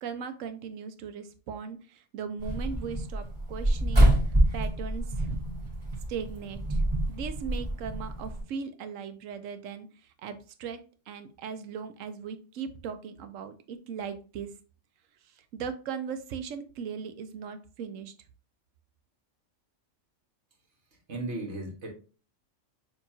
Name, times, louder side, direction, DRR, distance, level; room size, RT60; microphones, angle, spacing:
voice 1, 0.0-4.1 4.5-5.4 6.1-9.9 10.2-14.5 15.5-18.1, right 6 dB, 75° right, 10 dB, 1.0 m, -38 dB
sound 1, 2.4-8.4, right 1 dB, 25° right, 1.7 m, -26 dB
voice 2, 20.9-21.9, right 2 dB, 60° right, 0 dB, 1.7 m, -36 dB
6.7 x 2.9 x 2.7 m, 0.36 s
omnidirectional pair, 1.3 m